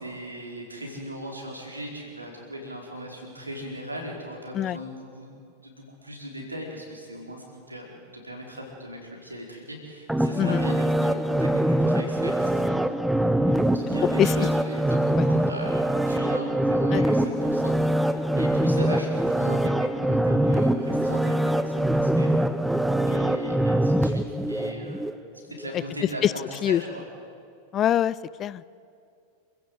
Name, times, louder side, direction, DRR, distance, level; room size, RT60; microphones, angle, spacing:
voice 1, 0.0-22.3 23.0-25.1 25.4-27.0, equal, 85° right, 0 dB, 4.7 m, -38 dB
sound 1, 10.1-25.1 25.6-25.7, right 1 dB, 5° right, 0.8 m, -23 dB
voice 2, 27.7-28.6, left 11 dB, 30° left, 20 dB, 0.5 m, -23 dB
28.0 x 15.5 x 8.0 m, 2.4 s
figure-of-eight pair, 90°, 0 cm